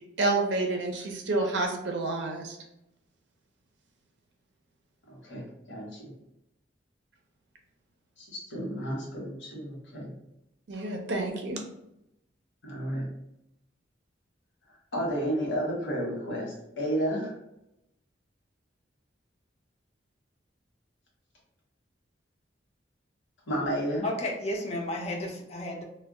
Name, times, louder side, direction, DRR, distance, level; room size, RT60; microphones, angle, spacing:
voice 1, 0.2-2.6 10.7-11.6, right 2 dB, 70° right, 2 dB, 0.5 m, -29 dB
voice 2, 5.1-6.1 8.2-10.1 12.6-13.1 14.9-17.3 23.5-24.0, equal, 80° left, -3 dB, 1.0 m, -32 dB
voice 3, 24.0-25.8, left 1 dB, 35° left, 1 dB, 0.4 m, -32 dB
2.1 x 2.1 x 3.5 m, 0.84 s
head